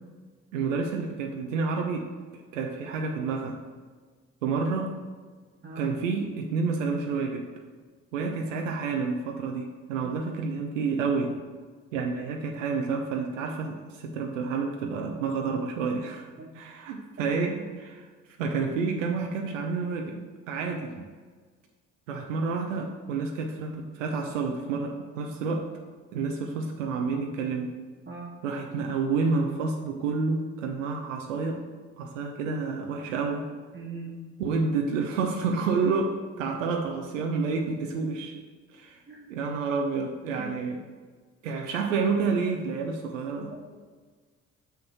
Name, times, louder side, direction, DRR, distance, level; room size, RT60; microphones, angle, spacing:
voice 1, 0.5-2.1 2.3-3.6 4.4-4.9 5.8-7.5 8.1-11.4 11.9-16.3 16.5-18.0 18.4-21.1 22.1-25.7 26.1-27.7 28.4-31.6 32.0-33.5 34.4-38.3 38.7-39.0 39.3-40.8 41.4-43.5, right 4 dB, 80° right, 3 dB, 0.7 m, -29 dB
voice 2, 33.7-34.2 36.4-36.6 39.1-39.3 40.4-40.5, right 3 dB, 30° right, -5 dB, 1.3 m, -41 dB
6.4 x 5.7 x 4.2 m, 1.5 s
figure-of-eight pair, 45°, 38 cm